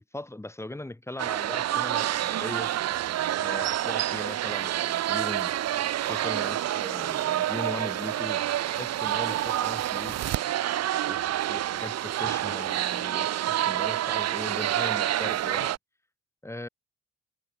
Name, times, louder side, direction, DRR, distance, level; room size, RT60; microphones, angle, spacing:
voice 1, 0.1-2.7 3.4-5.5 6.1-10.3 11.1-11.2 11.5-15.7 16.4-16.7, left 1 dB, 10° left, 2.0 m, -39 dB
sound 1, 1.2-15.8, right 12 dB, 60° right, 0.7 m, -28 dB
cardioid pair, 90°, 30 cm